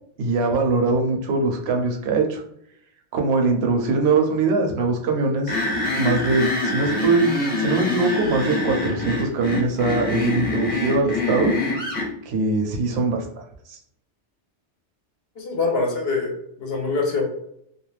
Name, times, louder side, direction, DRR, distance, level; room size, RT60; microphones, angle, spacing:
voice 1, 0.2-2.4 3.1-5.6 6.0-11.5 12.3-13.2, right 3 dB, 70° right, 2 dB, 0.8 m, -22 dB
sound 1, 5.5-12.1, left 2 dB, 30° left, 0.9 m, -25 dB
voice 2, 15.4-16.3 16.6-17.3, left 3 dB, 65° left, 1 dB, 0.7 m, -24 dB
2.3 x 2.1 x 3.1 m, 0.72 s
omnidirectional pair, 1.2 m